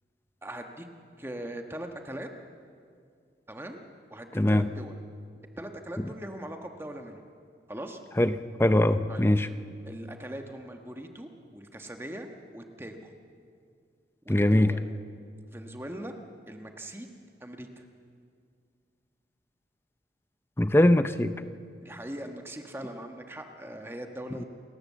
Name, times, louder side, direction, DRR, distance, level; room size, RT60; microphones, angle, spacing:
voice 1, 0.4-0.9 1.2-2.3 3.5-3.8 4.1-5.0 5.6-7.2 7.7-8.0 9.1-9.2 9.8-13.1 14.2-14.9 15.5-16.1 16.5-17.1 17.4-17.8 21.8-24.4, right 1 dB, 15° right, 4 dB, 1.3 m, -40 dB
voice 2, 4.4-4.7 8.2-9.5 14.3-14.7 20.6-21.3, left 1 dB, 15° left, 11 dB, 0.5 m, -22 dB
28.5 x 13.0 x 7.5 m, 2.2 s
head